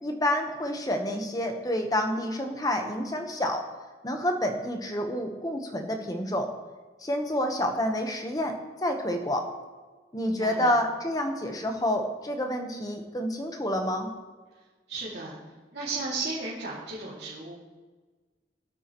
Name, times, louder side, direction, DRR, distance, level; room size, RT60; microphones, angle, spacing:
voice 1, 0.0-3.7 4.0-6.5 7.0-9.5 10.1-14.1, left 1 dB, 20° left, 4 dB, 1.0 m, -28 dB
voice 2, 10.2-10.7 14.9-15.4 15.7-17.5, right 3 dB, 75° right, -8 dB, 2.4 m, -34 dB
15.5 x 9.1 x 3.0 m, 1.3 s
head